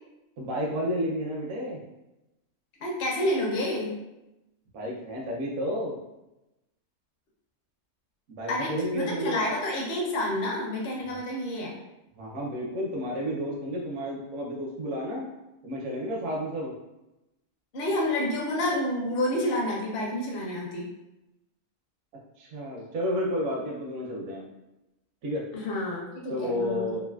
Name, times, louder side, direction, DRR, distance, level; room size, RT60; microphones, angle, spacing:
voice 1, 0.4-1.8 4.7-6.0 8.3-9.4 11.0-11.2 12.1-15.3 15.6-16.7 22.4-24.4 25.2-25.4 26.3-27.0, equal, 65° right, -3 dB, 1.0 m, -31 dB
voice 2, 2.8-3.9 8.5-11.8 17.7-20.9 25.5-27.0, left 1 dB, 50° left, -2 dB, 0.7 m, -29 dB
3.2 x 2.4 x 2.3 m, 0.95 s
omnidirectional pair, 1.6 m